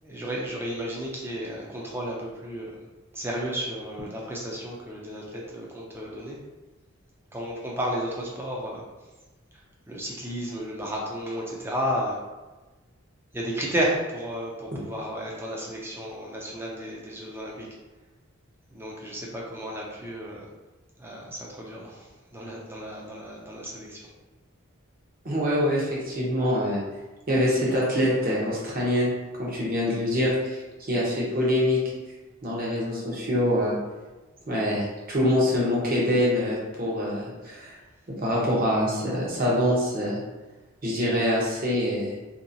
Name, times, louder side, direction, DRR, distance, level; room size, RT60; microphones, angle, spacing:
voice 1, 0.0-2.9 3.1-6.4 7.3-8.9 9.9-12.2 13.3-17.7 18.7-20.5 21.0-24.0, equal, 10° right, -3 dB, 0.5 m, -33 dB
voice 2, 25.2-26.8 27.3-29.1 29.4-30.6 30.9-31.8 32.4-33.8 34.5-37.7 38.2-40.2 40.8-42.1, left 1 dB, 45° right, -5 dB, 0.9 m, -25 dB
2.9 x 2.8 x 2.7 m, 1.2 s
head